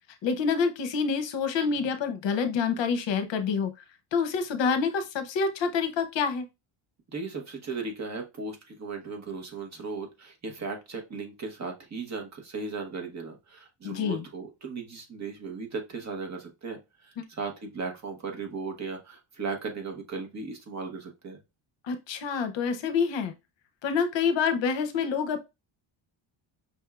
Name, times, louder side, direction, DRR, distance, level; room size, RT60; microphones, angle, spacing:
voice 1, 0.2-3.7 4.1-6.5 13.8-14.2 17.2-17.3 21.9-23.3 23.8-25.4, left 5 dB, 65° left, 8 dB, 0.8 m, -27 dB
voice 2, 7.1-21.4, right 4 dB, 35° right, 3 dB, 1.0 m, -37 dB
5.3 x 3.4 x 2.3 m, 0.24 s
cardioid pair, 180°, 49 cm